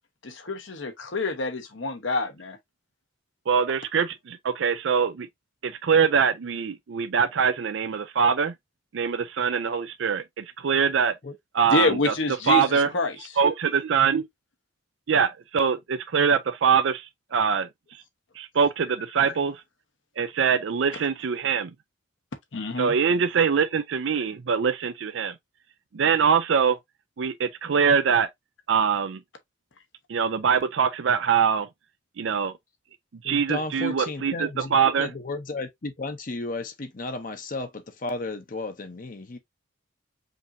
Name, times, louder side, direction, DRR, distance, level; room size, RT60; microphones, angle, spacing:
voice 1, 0.2-2.6 11.7-13.2 22.5-22.9, left 2 dB, 70° left, 1.0 m, -27 dB
voice 2, 3.5-5.3 5.6-8.5 8.9-11.1 11.5-12.1 12.5-12.9 13.4-14.2 15.1-17.7 18.4-19.6 20.2-21.7 22.8-25.3 25.9-26.8 27.2-28.3 28.7-29.2 30.1-31.7 32.2-32.5 33.2-35.1, right 6 dB, 70° right, 0.4 m, -23 dB
voice 3, 33.2-39.4, left 2 dB, 45° left, 0.7 m, -34 dB
5.2 x 2.9 x 2.6 m
head